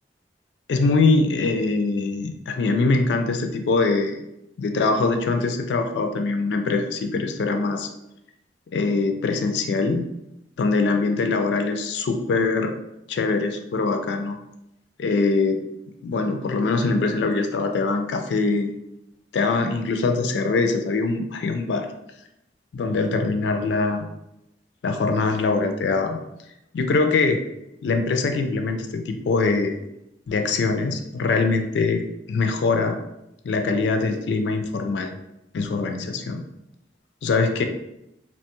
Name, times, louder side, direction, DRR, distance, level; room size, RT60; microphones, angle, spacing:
voice 1, 0.7-4.2 4.6-7.9 8.7-10.0 10.6-12.7 13.1-14.4 15.0-15.6 16.0-18.7 19.3-21.9 22.7-24.1 24.8-26.2 26.7-27.4 27.8-29.8 30.3-32.0 32.3-33.0 33.4-35.1 35.5-36.4 37.2-37.6, left 3 dB, 75° left, 5 dB, 0.3 m, -23 dB
2.8 x 2.2 x 2.9 m, 0.84 s
head